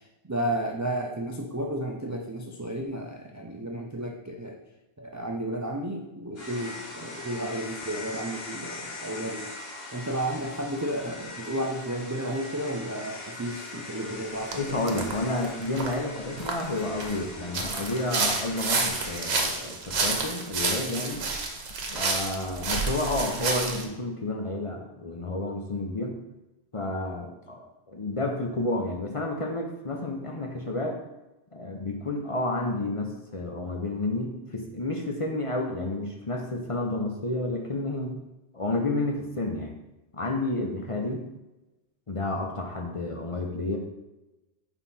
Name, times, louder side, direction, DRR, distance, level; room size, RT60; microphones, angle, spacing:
voice 1, 0.2-4.6 5.0-9.5 9.9-15.0, right 1 dB, 30° right, 1 dB, 0.3 m, -32 dB
sound 1, 6.4-19.4, left 2 dB, 60° left, 1.6 m, -41 dB
sound 2, 14.5-14.6 14.9-15.1 15.4-17.2 17.5-23.8, right 4 dB, 70° right, 1.1 m, -29 dB
voice 2, 14.6-21.2 21.9-26.2 26.7-31.0 31.5-38.2 38.5-39.7 40.1-41.2 42.1-43.8, left 2 dB, 35° left, 1 dB, 0.6 m, -30 dB
5.5 x 4.5 x 4.2 m, 1.0 s
omnidirectional pair, 1.2 m